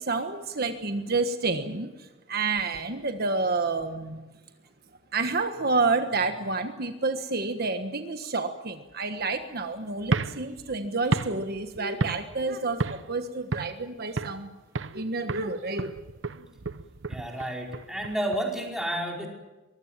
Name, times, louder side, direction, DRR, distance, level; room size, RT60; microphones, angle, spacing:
voice 1, 0.0-4.3 5.1-14.5 14.9-16.0 16.3-16.4, right 3 dB, 55° right, 7 dB, 1.4 m, -29 dB
sound 1, 10.0-12.5 12.8-13.1 13.5-14.4 14.7-15.0 15.3-18.4, right 3 dB, 75° right, 0.9 m, -32 dB
voice 2, 17.1-19.3, right 1 dB, 5° right, 0 dB, 4.9 m, -31 dB
24.0 x 20.5 x 7.5 m, 1.1 s
head